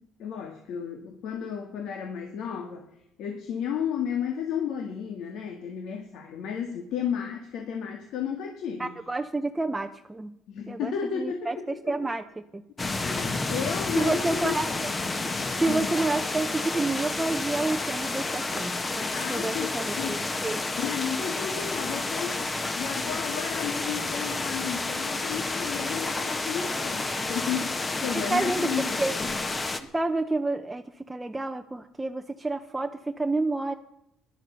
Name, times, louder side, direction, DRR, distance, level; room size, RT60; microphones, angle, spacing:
voice 1, 0.0-2.9 3.2-8.9 10.5-12.0 13.0-14.6 15.7-15.9 19.1-20.5 20.8-29.1, left 7 dB, 70° left, 4 dB, 1.8 m, -33 dB
voice 2, 8.8-10.3 10.7-12.2 12.5-12.6 14.0-14.9 15.6-20.6 28.1-29.1 29.9-33.7, right 2 dB, 10° right, 5 dB, 0.7 m, -29 dB
sound 1, 12.8-29.8, left 3 dB, 20° left, 1.2 m, -30 dB
14.5 x 11.0 x 6.8 m, 0.83 s
cardioid pair, 125°, 0 cm